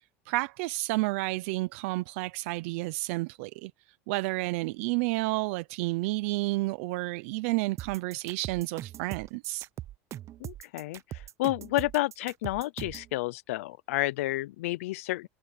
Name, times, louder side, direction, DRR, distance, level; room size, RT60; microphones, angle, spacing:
voice 1, 0.3-3.7 4.1-9.7, right 22 dB, 75° right, 0.7 m, -30 dB
sound 1, 7.8-13.1, right 12 dB, 40° right, 0.9 m, -41 dB
voice 2, 10.4-15.3, left 18 dB, 85° left, 0.6 m, -31 dB
supercardioid pair, 120°, 7 cm